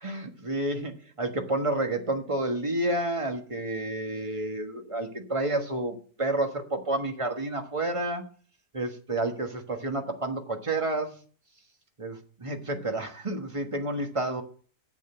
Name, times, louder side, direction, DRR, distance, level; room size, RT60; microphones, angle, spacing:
voice 1, 0.0-8.2 8.7-11.1 12.0-14.4, right 2 dB, 20° right, 1.3 m, -30 dB
7.9 x 7.4 x 7.8 m
omnidirectional pair, 1.8 m